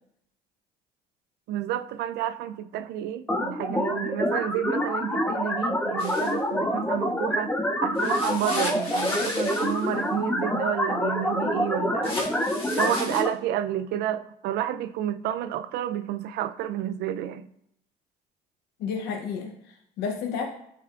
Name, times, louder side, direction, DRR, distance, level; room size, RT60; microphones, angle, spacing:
voice 1, 1.5-7.5 7.8-12.2 12.7-17.5, right 11 dB, 80° right, 0.4 m, -30 dB
sound 1, 3.3-13.3, left 1 dB, 10° left, 0.6 m, -27 dB
sound 2, 6.0-6.3 8.0-9.9 12.0-13.2, left 2 dB, 35° left, 1.4 m, -35 dB
voice 2, 18.8-20.4, left 6 dB, 85° left, 0.7 m, -31 dB
11.5 x 4.6 x 2.4 m
cardioid pair, 110°, 17 cm